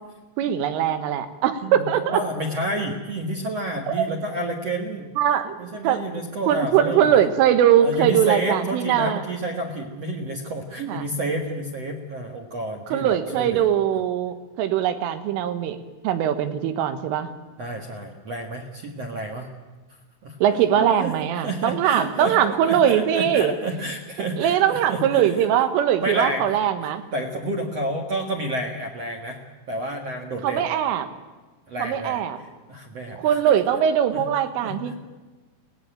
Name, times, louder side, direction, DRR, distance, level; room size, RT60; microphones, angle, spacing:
voice 1, 0.4-2.2 3.9-4.1 5.2-5.6 5.8-6.0 6.5-9.2 10.9-11.1 12.9-15.8 16.0-17.3 20.4-23.5 24.4-27.0 30.4-31.1 31.8-32.4 33.2-35.0, right 9 dB, 85° right, 10 dB, 4.0 m, -21 dB
voice 2, 2.1-5.1 5.6-7.2 7.8-13.7 17.6-19.5 20.2-25.4 26.0-26.5 26.8-29.4 29.7-30.7 31.7-32.2 32.7-33.4 34.1-34.2 34.6-35.0, right 1 dB, 60° right, 2 dB, 1.6 m, -30 dB
23.0 x 18.5 x 9.0 m, 1.3 s
omnidirectional pair, 5.7 m